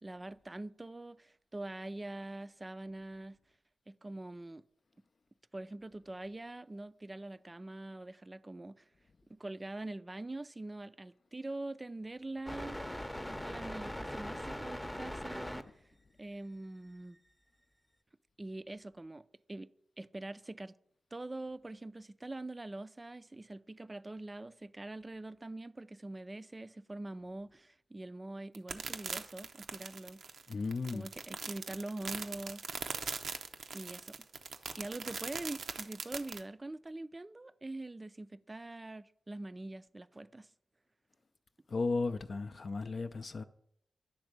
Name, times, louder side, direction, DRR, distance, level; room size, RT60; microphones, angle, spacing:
voice 1, 0.0-3.4 3.9-4.6 5.5-8.8 9.3-12.9 13.2-15.6 16.2-17.2 18.4-19.7 20.0-20.7 21.1-30.2 30.9-32.6 33.7-34.2 34.8-40.5, right 2 dB, 25° right, 0.4 m, -44 dB
sound 1, 12.5-15.6, equal, 10° left, 0.7 m, -40 dB
sound 2, 28.5-36.4, right 5 dB, 75° right, 0.6 m, -41 dB
voice 2, 30.5-31.1 41.7-43.4, left 3 dB, 55° left, 0.4 m, -35 dB
10.0 x 3.5 x 6.6 m
cardioid pair, 50°, 0 cm